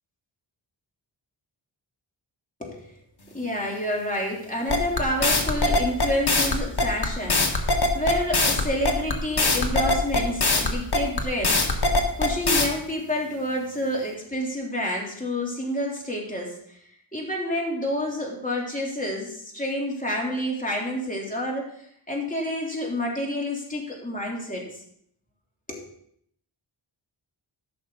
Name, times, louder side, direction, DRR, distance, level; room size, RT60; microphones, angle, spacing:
voice 1, 2.6-2.9 3.3-11.8 12.2-16.8 17.1-21.7 22.1-24.7 25.7-25.8, left 1 dB, 15° left, -2 dB, 3.2 m, -29 dB
sound 1, 4.7-12.7, left 2 dB, 50° left, 1.6 m, -21 dB
14.5 x 6.4 x 3.9 m, 0.68 s
wide cardioid pair, 55°, 49 cm